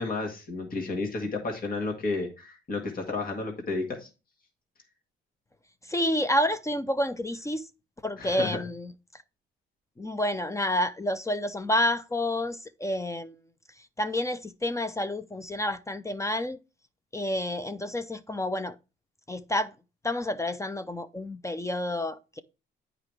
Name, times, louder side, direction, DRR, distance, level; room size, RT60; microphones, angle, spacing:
voice 1, 0.0-4.1 8.2-8.6, left 3 dB, 45° left, 1.8 m, -32 dB
voice 2, 5.8-7.7 8.0-9.2 10.0-13.4 14.0-16.6 17.1-18.8 19.3-19.7 20.0-22.4, left 1 dB, 15° left, 0.5 m, -29 dB
8.9 x 4.9 x 3.3 m
cardioid pair, 90°, 20 cm